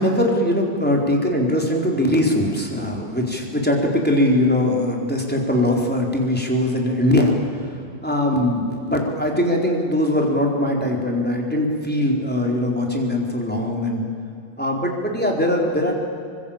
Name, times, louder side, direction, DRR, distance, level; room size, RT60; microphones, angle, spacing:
voice 1, 0.0-7.4 8.0-14.1 14.6-15.9, left 1 dB, 5° left, 0 dB, 4.2 m, -21 dB
28.0 x 24.0 x 8.8 m, 2.4 s
omnidirectional pair, 1.3 m